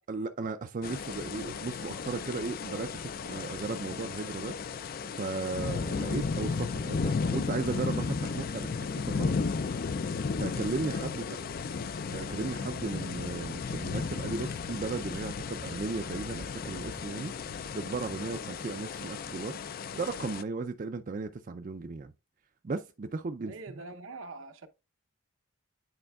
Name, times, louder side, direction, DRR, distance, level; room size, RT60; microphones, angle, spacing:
voice 1, 0.1-4.5 5.2-9.5 10.4-11.2 12.1-17.3 17.7-19.6 19.9-22.1 22.6-23.5, right 3 dB, 40° right, 0.4 m, -36 dB
sound 1, 0.8-20.4, left 5 dB, 45° left, 0.4 m, -34 dB
voice 2, 11.1-11.6 23.4-24.7, right 3 dB, 75° right, 0.8 m, -44 dB
sound 2, 11.3-17.0, left 1 dB, 90° left, 4.1 m, -52 dB
10.0 x 4.4 x 2.3 m
head